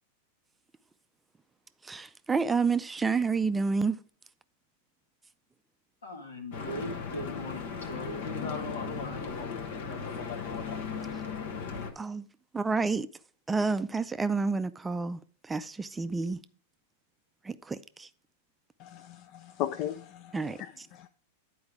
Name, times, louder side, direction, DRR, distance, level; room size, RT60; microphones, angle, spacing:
voice 1, 1.8-4.0 12.0-12.3 12.5-13.1 13.5-16.4 17.4-18.1 20.3-20.9, right 4 dB, 15° right, 0.4 m, -29 dB
voice 2, 6.0-9.3, left 1 dB, 80° left, 2.2 m, -40 dB
Stream / Boat Water vehicle, 6.5-11.9, left 5 dB, 65° left, 1.3 m, -36 dB
voice 3, 18.8-21.1, left 11 dB, 50° left, 0.4 m, -37 dB
9.6 x 4.6 x 4.8 m
hypercardioid pair, 100°, 0 cm